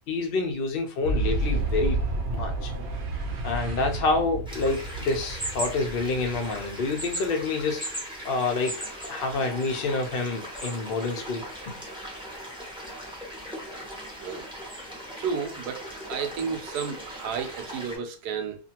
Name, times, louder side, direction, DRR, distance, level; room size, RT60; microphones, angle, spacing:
voice 1, 0.1-2.0 2.3-2.7 3.4-8.7 9.1-11.7, left 3 dB, 75° left, 0.5 m, -28 dB
Boom, 1.0-7.6, right 2 dB, 60° right, 0.7 m, -31 dB
sound 1, 4.5-18.0, equal, 5° right, 0.4 m, -38 dB
voice 2, 15.2-15.8 16.1-18.6, right 6 dB, 80° right, 1.1 m, -32 dB
2.6 x 2.5 x 2.8 m
omnidirectional pair, 1.7 m